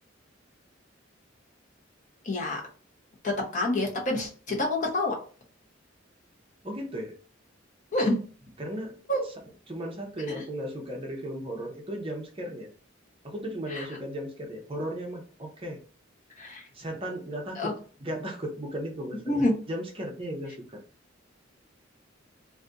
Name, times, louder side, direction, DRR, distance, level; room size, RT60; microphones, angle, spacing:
voice 1, 2.2-2.6 3.2-5.2 7.9-8.2 9.1-9.2 10.3-10.4 13.7-13.9 16.4-16.6 17.6-17.7 19.3-19.6, left 1 dB, 40° left, -1 dB, 0.9 m, -27 dB
voice 2, 6.6-7.1 8.6-8.9 9.7-12.7 13.2-15.8 16.7-17.7 18.0-20.8, equal, 30° right, 1 dB, 0.7 m, -36 dB
2.6 x 2.5 x 3.5 m, 0.39 s
head